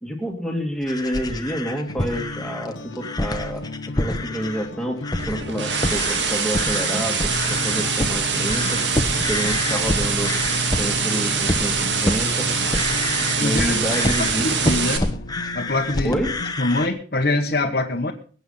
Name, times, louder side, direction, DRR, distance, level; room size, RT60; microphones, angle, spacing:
voice 1, 0.0-3.6 4.0-5.0 5.3-8.8 9.3-10.3 10.8-12.8 13.4-14.5 16.0-16.3, equal, 5° left, 2 dB, 2.4 m, -28 dB
sound 1, 0.8-4.7 5.0-5.4 5.7-16.9, left 1 dB, 20° left, 1.2 m, -28 dB
sound 2, 1.7-16.5, left 1 dB, 80° left, 1.1 m, -33 dB
sound 3, 5.2-15.0, right 5 dB, 70° right, 2.4 m, -24 dB
voice 2, 13.4-13.9 14.4-15.1 15.5-16.2 16.6-18.1, left 2 dB, 50° left, -1 dB, 1.4 m, -23 dB
21.5 x 8.4 x 5.6 m, 0.43 s
head